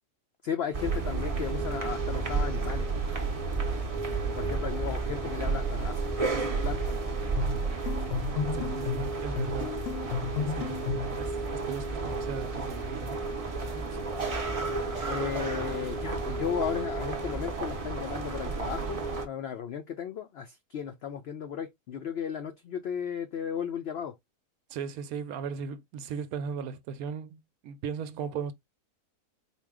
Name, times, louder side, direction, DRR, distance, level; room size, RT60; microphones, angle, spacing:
voice 1, 0.4-2.9 4.3-7.0 14.0-14.1 15.1-24.2, left 8 dB, 85° left, 0.5 m, -35 dB
sound 1, 0.7-19.3, right 3 dB, 40° right, 0.5 m, -32 dB
sound 2, 7.4-11.2, left 6 dB, 65° left, 0.9 m, -33 dB
voice 2, 8.5-9.8 10.4-13.2 24.7-28.5, right 6 dB, 75° right, 1.0 m, -37 dB
4.3 x 2.2 x 3.5 m
omnidirectional pair, 1.6 m